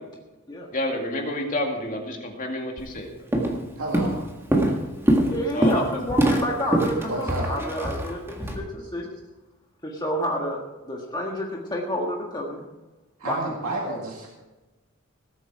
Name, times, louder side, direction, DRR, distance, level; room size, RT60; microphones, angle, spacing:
voice 1, 0.7-3.1 5.5-5.8, left 1 dB, 40° left, 2 dB, 2.2 m, -29 dB
Walk footsteps, 2.8-3.0 3.3-3.7 3.9-8.6, right 1 dB, 10° right, 1.7 m, -23 dB
voice 2, 3.8-4.1 7.1-7.5 8.8-8.9 13.2-14.3, right 2 dB, 85° right, -2 dB, 2.1 m, -30 dB
voice 3, 5.3-9.0 9.8-12.6 13.2-13.4 13.8-14.0, equal, 20° left, -1 dB, 1.6 m, -29 dB
18.5 x 8.4 x 4.8 m, 1.1 s
head